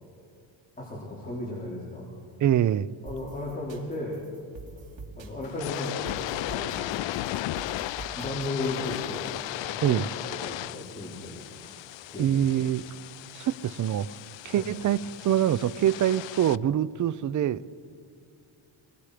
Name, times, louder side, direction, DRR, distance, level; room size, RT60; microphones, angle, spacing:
voice 1, 0.8-2.1 3.0-4.2 4.8-4.9 5.2-6.8 8.2-9.3 9.7-11.4 12.1-12.4 14.5-14.6, left 2 dB, 15° left, 4.0 m, -35 dB
voice 2, 2.4-2.9 9.8-10.1 12.2-12.9 13.3-14.1 14.4-17.6, right 10 dB, 40° right, 0.5 m, -25 dB
sound 1, 3.1-9.4, right 3 dB, 65° right, 3.4 m, -45 dB
sound 2, 5.4-16.6, left 15 dB, 65° left, 0.6 m, -36 dB
27.5 x 20.5 x 5.0 m
cardioid pair, 135°, 48 cm